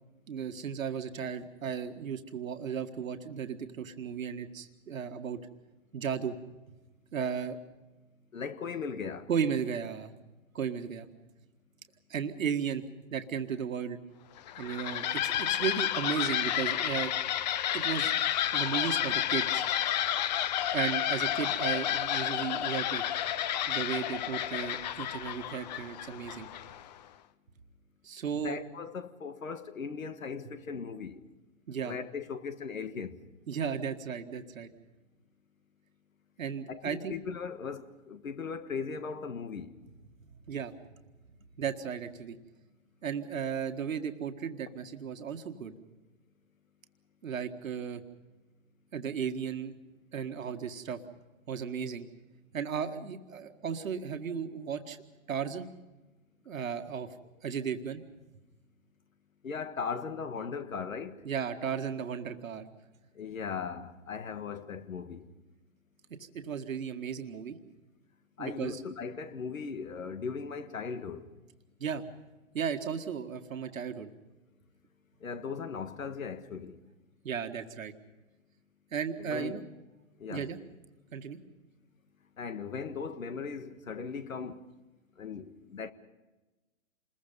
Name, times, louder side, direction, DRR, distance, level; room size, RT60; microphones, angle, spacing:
voice 1, 0.3-5.4 5.9-6.3 6.6-6.7 7.1-7.6 9.3-10.1 10.5-11.1 12.1-12.9 13.1-14.0 14.6-17.1 17.7-18.1 18.5-19.6 20.7-23.0 23.7-26.5 28.0-28.6 30.5-30.6 31.7-32.0 33.5-34.7 36.4-37.2 40.3-40.7 41.6-42.4 43.0-45.7 47.2-48.0 48.9-49.7 50.1-51.0 51.5-52.1 52.5-55.0 55.3-55.7 56.5-57.1 57.4-58.0 61.2-62.7 66.3-67.6 68.4-68.8 71.8-72.1 72.5-74.1 77.2-77.9 78.9-79.6 80.3-80.6 81.1-81.4, right 7 dB, 75° right, 1.8 m, -35 dB
voice 2, 8.3-9.3 28.3-31.2 31.8-33.2 36.7-39.8 59.4-61.2 63.1-65.2 68.4-71.3 75.2-76.8 79.2-79.6 80.2-80.5 82.4-84.6 85.2-85.9, left 5 dB, 85° left, 1.7 m, -38 dB
sound 1, 14.4-26.9, left 11 dB, 35° left, 0.7 m, -31 dB
27.5 x 21.5 x 5.4 m
hypercardioid pair, 140°, 40 cm